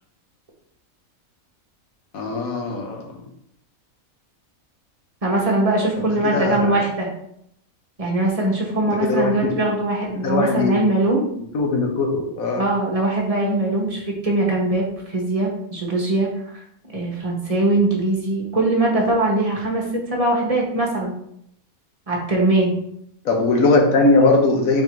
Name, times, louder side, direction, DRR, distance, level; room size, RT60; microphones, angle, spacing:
voice 1, 2.1-3.1 6.0-6.8 8.8-9.6 10.2-10.8 11.4-12.7 23.2-24.8, left 3 dB, 80° left, 2 dB, 1.3 m, -20 dB
voice 2, 5.2-7.1 8.0-11.2 12.5-16.6 16.9-21.1 22.1-22.7, right 2 dB, 30° right, -2 dB, 0.9 m, -21 dB
4.3 x 2.7 x 4.6 m, 0.74 s
omnidirectional pair, 1.5 m